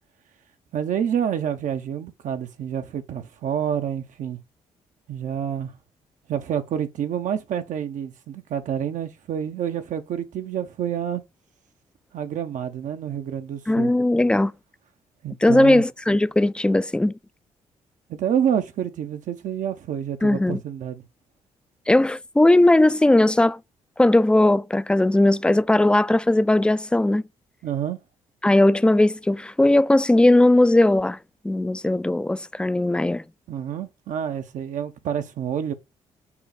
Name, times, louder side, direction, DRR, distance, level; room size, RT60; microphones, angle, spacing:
voice 1, 0.7-4.4 5.1-5.7 6.3-11.2 12.1-13.9 15.2-15.8 18.1-21.0 27.6-28.0 33.5-35.7, right 9 dB, 65° right, 0.6 m, -28 dB
voice 2, 13.7-14.5 15.4-17.1 20.2-20.6 21.9-23.6 24.0-27.2 28.4-31.2 31.4-33.2, left 1 dB, 5° left, 0.3 m, -18 dB
5.5 x 2.1 x 4.1 m
hypercardioid pair, 45°, 14 cm